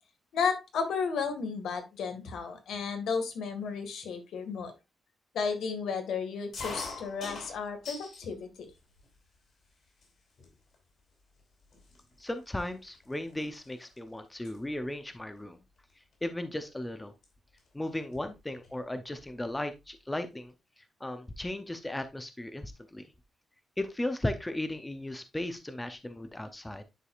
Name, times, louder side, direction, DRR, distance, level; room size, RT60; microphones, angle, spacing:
voice 1, 0.3-4.7 5.3-8.7, left 5 dB, 85° left, 6 dB, 1.8 m, -33 dB
sound 1, 6.5-8.3 8.7-9.4 10.0-10.1 10.4-10.8 11.4-11.5 11.7-14.0 14.2-14.6 15.9-16.1 17.2-17.3 17.6-17.7 17.9-18.8, left 3 dB, 55° left, 3.2 m, -43 dB
voice 2, 12.2-15.6 16.2-17.1 17.7-23.1 23.8-26.8, left 1 dB, 10° left, 9 dB, 0.6 m, -36 dB
10.0 x 4.7 x 2.4 m, 0.24 s
wide cardioid pair, 175°, 0 cm